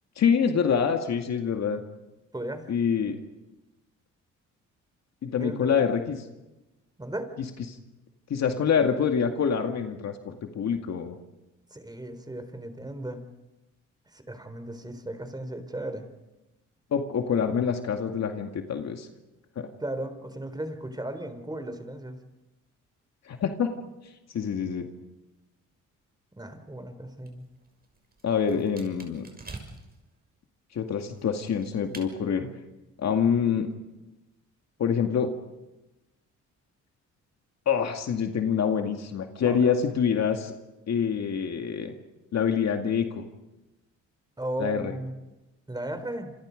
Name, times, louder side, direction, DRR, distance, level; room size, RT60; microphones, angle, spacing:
voice 1, 0.2-1.8 2.7-3.2 5.2-6.2 7.4-7.8 8.3-11.2 16.9-19.1 19.6-19.7 23.2-23.7 24.0-24.9 28.2-29.2 30.7-32.5 33.0-33.7 34.8-35.3 37.7-40.5 40.9-41.9 42.3-43.2 44.6-44.9, left 7 dB, 60° left, 4 dB, 2.3 m, -26 dB
voice 2, 2.3-2.6 5.4-5.9 7.0-7.3 11.7-13.2 14.1-16.1 19.8-22.2 26.4-27.5 39.5-39.7 44.4-45.2 45.7-46.3, right 1 dB, 15° right, 9 dB, 3.7 m, -36 dB
sound 1, 27.1-30.0 30.7-32.1, right 3 dB, 30° right, 6.3 m, -47 dB
28.0 x 27.0 x 5.3 m, 1.0 s
cardioid pair, 90°, 30 cm